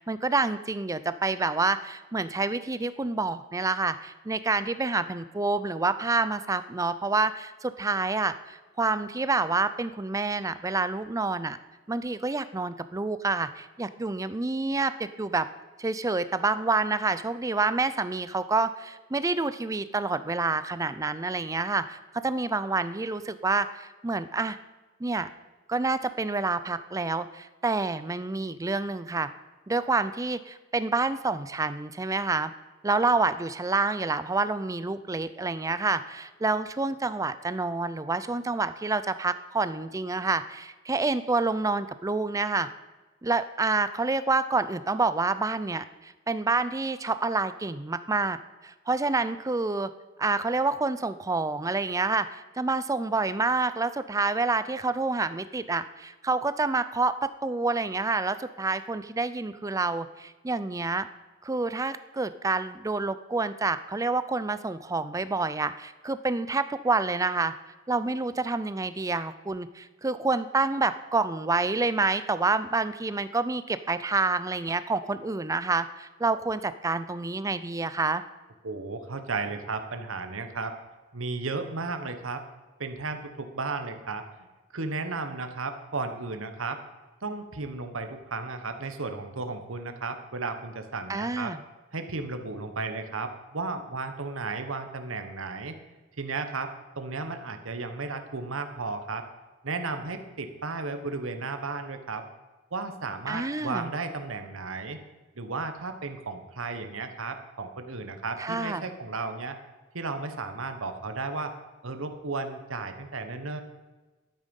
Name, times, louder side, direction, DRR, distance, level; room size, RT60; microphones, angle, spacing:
voice 1, 0.0-11.6 11.9-15.5 15.8-24.6 25.0-25.3 25.7-29.3 29.7-32.5 32.8-42.7 43.2-48.4 48.6-49.9 50.2-61.1 61.4-67.5 67.9-78.2 91.1-91.6 103.3-103.9 108.4-108.8, right 3 dB, 15° right, 13 dB, 0.4 m, -28 dB
voice 2, 78.6-80.7 81.1-82.4 82.8-84.2 84.7-86.8 87.2-91.5 91.9-95.8 96.2-99.2 99.6-102.2 102.7-105.0 105.4-109.6 109.9-111.5 111.8-113.6, right 3 dB, 90° right, 7 dB, 1.2 m, -34 dB
12.0 x 9.1 x 5.4 m, 1.2 s
head